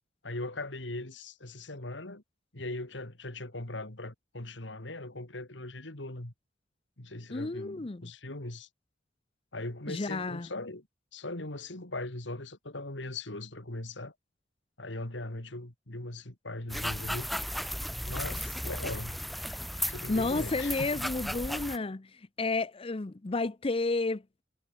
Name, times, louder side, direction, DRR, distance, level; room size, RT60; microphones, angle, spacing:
voice 1, 0.2-2.2 2.5-6.3 7.0-8.7 9.5-10.9 11.1-14.1 14.8-17.3 18.0-19.1 19.9-21.0, left 2 dB, 75° left, 2.9 m, -39 dB
voice 2, 7.3-8.1 9.9-10.5 20.1-22.1 22.4-24.2, left 3 dB, 30° left, 0.6 m, -31 dB
sound 1, 16.7-21.8, equal, ahead, 1.2 m, -35 dB
head